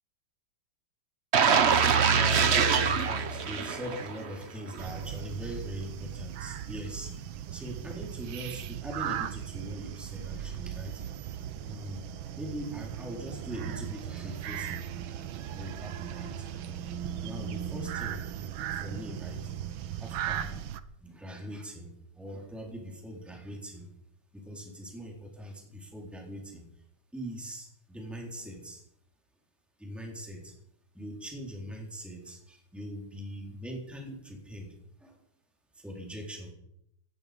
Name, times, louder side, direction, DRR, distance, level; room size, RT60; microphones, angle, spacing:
sound 1, 1.3-4.3 4.7-4.8, right 6 dB, 45° right, 0.9 m, -24 dB
voice 1, 1.8-11.0 11.6-14.9 15.5-16.5 17.2-18.5 18.8-20.7 21.0-23.9 24.3-26.6 27.1-28.8 29.8-30.5 30.9-35.2 35.7-36.5, equal, ahead, 0 dB, 4.0 m, -42 dB
sound 2, 4.8-20.8, right 10 dB, 75° right, 1.6 m, -37 dB
17.5 x 14.5 x 5.3 m, 0.74 s
omnidirectional pair, 2.2 m